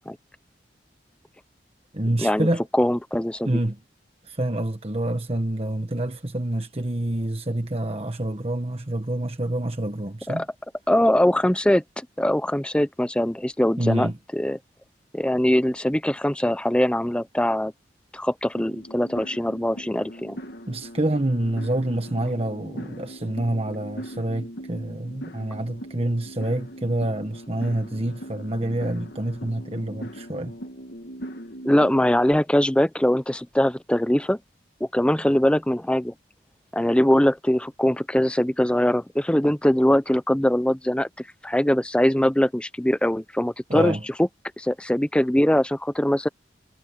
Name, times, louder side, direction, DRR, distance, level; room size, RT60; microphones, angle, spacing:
voice 1, 1.9-2.6 3.4-3.8 4.2-10.4 13.8-14.2 20.7-30.6 43.7-44.0, right 1 dB, 35° right, 1.4 m, -27 dB
voice 2, 2.7-3.5 10.3-10.4 10.9-11.8 12.2-14.6 15.1-17.7 18.1-20.4 31.6-34.4 34.9-36.1 36.7-41.1 41.4-44.3 44.6-46.3, left 1 dB, 5° left, 0.5 m, -22 dB
sound 1, 18.6-32.4, equal, 60° left, 1.8 m, -40 dB
head